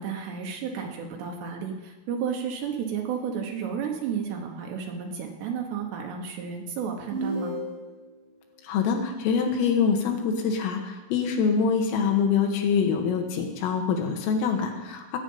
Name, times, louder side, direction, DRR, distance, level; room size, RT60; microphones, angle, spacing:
voice 1, 0.0-7.6, right 7 dB, 70° right, 2 dB, 2.9 m, -32 dB
sound 1, 7.1-8.1, right 1 dB, 45° right, 5.2 m, -32 dB
voice 2, 8.6-15.2, left 6 dB, 85° left, 3 dB, 4.1 m, -25 dB
19.0 x 8.1 x 5.5 m, 1.2 s
omnidirectional pair, 5.8 m